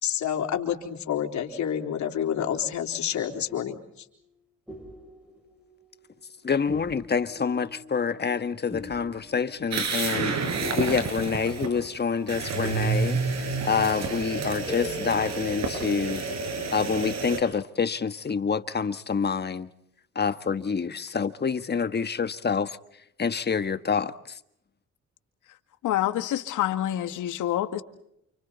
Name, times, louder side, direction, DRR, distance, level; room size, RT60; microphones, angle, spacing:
voice 1, 0.0-3.8, left 9 dB, 70° left, 4.1 m, -28 dB
sound 1, 3.0-4.1 4.7-6.4 6.7-16.2, left 2 dB, 5° right, 6.8 m, -44 dB
voice 2, 6.4-10.3 10.8-13.2 13.6-16.2 16.7-19.7 20.1-22.8 23.2-24.4, left 6 dB, 35° left, 1.4 m, -27 dB
sound 2, 9.7-11.7 12.3-17.4, right 4 dB, 60° right, 7.3 m, -29 dB
voice 3, 25.8-27.8, left 12 dB, 85° left, 2.1 m, -27 dB
30.0 x 29.0 x 4.1 m
cardioid pair, 90°, 30 cm